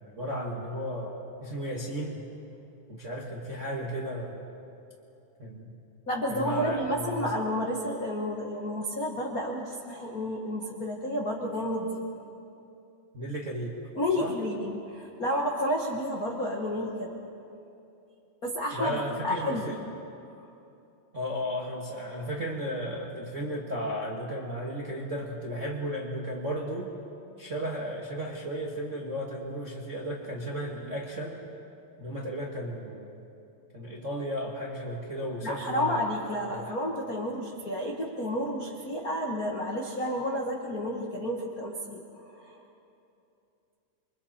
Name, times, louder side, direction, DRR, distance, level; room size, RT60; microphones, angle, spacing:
voice 1, 0.2-2.2 2.9-4.4 5.4-5.7 6.3-7.3 13.1-13.8 14.2-14.4 18.7-19.7 21.1-26.9 27.4-31.4 32.0-33.1 33.7-35.9 36.5-36.7, equal, 40° right, -3 dB, 1.1 m, -34 dB
voice 2, 6.1-12.0 13.9-17.1 18.4-19.7 35.4-42.0 42.3-42.6, equal, 70° left, -1 dB, 0.8 m, -31 dB
29.0 x 24.0 x 4.3 m, 2.7 s
omnidirectional pair, 4.3 m